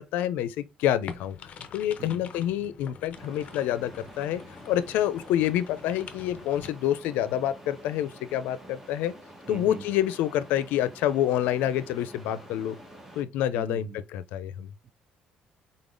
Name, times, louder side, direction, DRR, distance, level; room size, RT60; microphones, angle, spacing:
voice 1, 0.0-1.4 1.7-4.4 4.7-9.1 9.5-12.8 13.2-14.7, left 11 dB, 85° left, 0.5 m, -27 dB
sound 1, 1.1-6.7, left 6 dB, 50° left, 0.7 m, -45 dB
sound 2, 3.1-13.2, right 1 dB, 10° right, 1.4 m, -48 dB
voice 2, 9.5-9.9 13.5-14.0 14.8-14.9, right 7 dB, 40° right, 0.4 m, -41 dB
3.9 x 3.6 x 3.7 m
cardioid pair, 115°, 3 cm